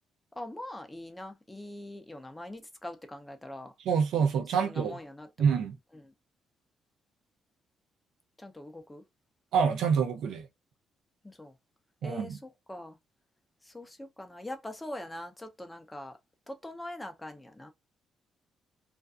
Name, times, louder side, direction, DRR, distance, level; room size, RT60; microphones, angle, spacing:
voice 1, 0.4-3.7 4.5-5.6 5.9-6.1 8.4-9.0 11.2-11.6 12.0-13.0 13.6-16.2 16.5-17.7, left 1 dB, 15° left, 0.6 m, -43 dB
voice 2, 3.9-4.9 5.4-5.8 9.5-10.5 12.0-12.4, right 6 dB, 80° right, 0.5 m, -26 dB
2.5 x 2.2 x 2.3 m
cardioid pair, 90°, 0 cm